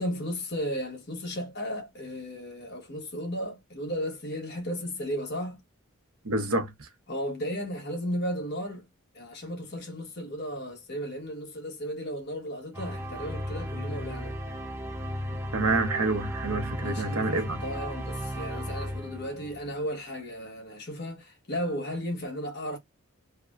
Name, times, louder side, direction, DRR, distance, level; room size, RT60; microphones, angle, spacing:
voice 1, 0.0-5.6 7.1-8.9 9.1-14.4 16.8-22.8, equal, 50° left, 1.3 m, -34 dB
voice 2, 6.2-6.9 15.5-17.6, right 2 dB, 90° right, 0.9 m, -28 dB
sound 1, 12.7-19.8, equal, 10° right, 0.5 m, -35 dB
3.4 x 2.2 x 2.4 m
head